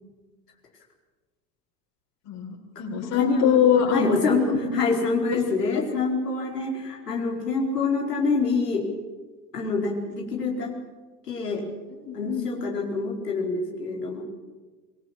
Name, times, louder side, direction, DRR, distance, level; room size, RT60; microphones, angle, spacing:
voice 1, 2.2-4.1 4.4-4.7 5.7-5.8 11.9-12.5, left 8 dB, 65° left, -1 dB, 8.0 m, -23 dB
voice 2, 3.0-3.6 3.9-8.8 9.5-10.7 11.3-11.6 12.1-14.2, left 4 dB, 90° left, -1 dB, 4.9 m, -26 dB
26.0 x 19.5 x 7.6 m, 1.3 s
hypercardioid pair, 80°, 46 cm